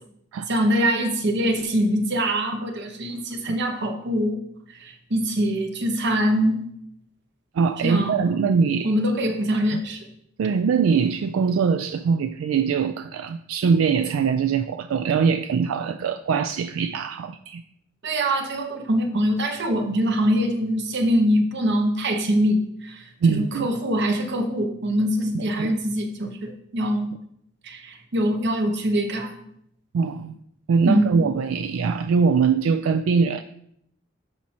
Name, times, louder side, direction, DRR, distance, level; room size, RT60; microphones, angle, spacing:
voice 1, 0.5-4.4 4.7-6.7 7.8-8.3 8.8-10.1 18.0-27.1 27.6-29.4 30.8-31.3, equal, 60° right, 5 dB, 0.9 m, -23 dB
voice 2, 7.5-8.9 10.4-17.6 23.2-23.7 25.3-25.7 29.9-30.3 30.7-33.4, right 5 dB, 80° right, 9 dB, 0.3 m, -22 dB
12.0 x 4.3 x 2.9 m, 0.73 s
head